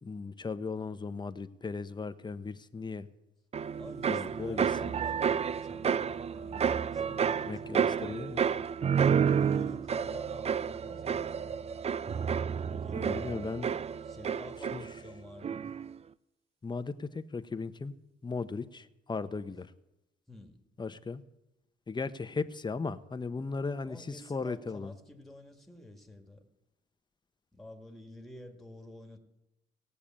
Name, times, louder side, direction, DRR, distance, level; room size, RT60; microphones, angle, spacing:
voice 1, 0.0-3.1 4.1-4.9 7.5-8.6 12.9-13.7 14.7-14.9 16.6-17.9 18.2-19.7 20.8-21.2 21.9-24.9, left 4 dB, 20° left, 13 dB, 0.8 m, -37 dB
sound 1, 3.5-15.1 15.4-15.9, right 7 dB, 30° right, 0.4 m, -30 dB
voice 2, 3.7-8.2 9.3-11.6 12.6-13.5 14.1-15.7 20.3-20.6 23.9-26.4 27.5-29.2, left 1 dB, ahead, 4 dB, 1.9 m, -50 dB
17.5 x 6.8 x 8.8 m, 0.95 s
cardioid pair, 90°, 20 cm